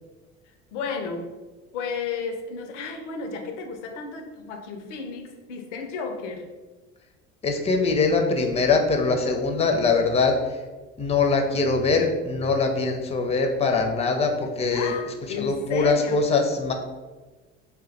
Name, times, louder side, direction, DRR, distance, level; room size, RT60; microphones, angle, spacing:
voice 1, 0.7-1.3 1.7-6.5 14.7-16.2, left 5 dB, 90° left, 5 dB, 0.5 m, -33 dB
voice 2, 7.4-10.4 11.0-14.9 15.4-16.7, left 4 dB, 20° left, 4 dB, 0.4 m, -22 dB
2.2 x 2.1 x 3.8 m, 1.2 s
hypercardioid pair, 70°, 35 cm